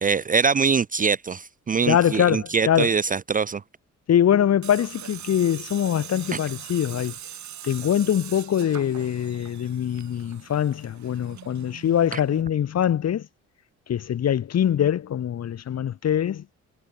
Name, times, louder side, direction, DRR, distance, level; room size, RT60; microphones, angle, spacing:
voice 1, 0.0-3.6 6.3-6.4 12.1-12.2, right 5 dB, 30° right, 0.5 m, -23 dB
voice 2, 1.9-2.9 4.1-7.1 7.6-13.2 13.9-16.4, left 10 dB, 55° left, 1.9 m, -23 dB
Tools, 4.6-12.4, right 11 dB, 70° right, 5.5 m, -42 dB
cardioid pair, 90°, 30 cm